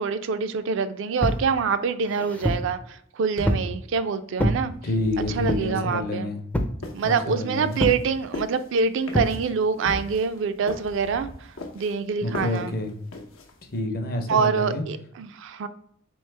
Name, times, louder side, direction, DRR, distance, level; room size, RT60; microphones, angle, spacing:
voice 1, 0.0-4.7 5.3-6.3 6.9-11.3 11.7-12.7 14.3-15.7, right 5 dB, 65° right, 10 dB, 0.4 m, -25 dB
sound 1, 1.2-1.5 2.0-2.7 3.5-3.8 4.4-4.6 5.5-5.8 6.5-6.8 7.8-8.1 9.1-9.4, equal, 5° left, 0.4 m, -25 dB
sound 2, 3.4-3.8 4.7-5.7 9.9-10.2 10.8-11.6, equal, 90° right, 1.1 m, -38 dB
voice 2, 4.8-6.4 7.0-7.8 12.2-12.9 13.7-14.8, left 1 dB, 50° left, 6 dB, 0.7 m, -28 dB
sound 3, 6.8-13.8, left 2 dB, 90° left, 0.8 m, -40 dB
3.8 x 3.1 x 3.2 m, 0.67 s
head